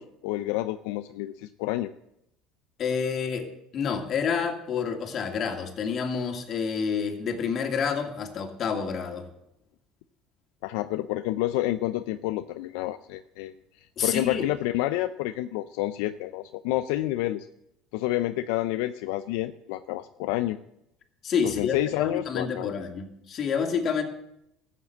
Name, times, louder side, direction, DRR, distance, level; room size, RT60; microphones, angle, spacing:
voice 1, 0.0-1.9 10.6-17.5 17.9-20.6 21.4-22.7, left 15 dB, 80° left, 11 dB, 0.5 m, -29 dB
voice 2, 2.8-3.5 3.7-9.3 14.0-14.4 21.2-24.0, left 6 dB, 45° left, 5 dB, 2.4 m, -28 dB
14.0 x 7.5 x 7.9 m, 0.81 s
supercardioid pair, 95°, 0 cm